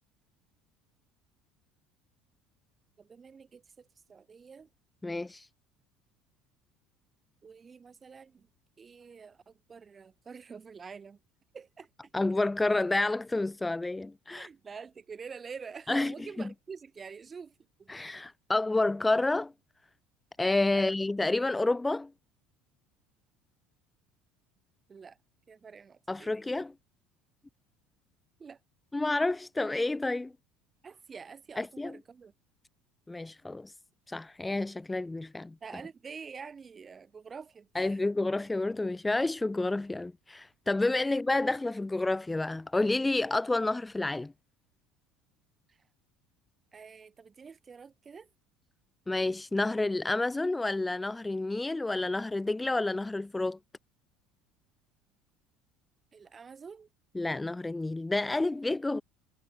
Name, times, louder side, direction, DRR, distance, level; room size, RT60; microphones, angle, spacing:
voice 1, 3.0-4.7 7.4-8.5 8.8-11.2 11.5-12.1 14.3-17.5 17.8-17.9 20.7-21.0 24.9-25.2 25.5-26.3 28.4-28.6 30.8-32.3 35.6-38.0 41.0-41.2 45.7-45.8 46.7-48.3 56.1-56.9, right 5 dB, 30° right, 3.2 m, -47 dB
voice 2, 5.0-5.5 12.1-14.5 15.9-16.1 17.9-19.5 20.4-22.1 26.1-26.7 28.9-30.3 31.6-32.0 33.1-33.7 34.1-35.5 37.7-44.3 49.1-53.6 57.1-59.0, left 2 dB, 10° left, 1.2 m, -29 dB
supercardioid pair, 95°, 0 cm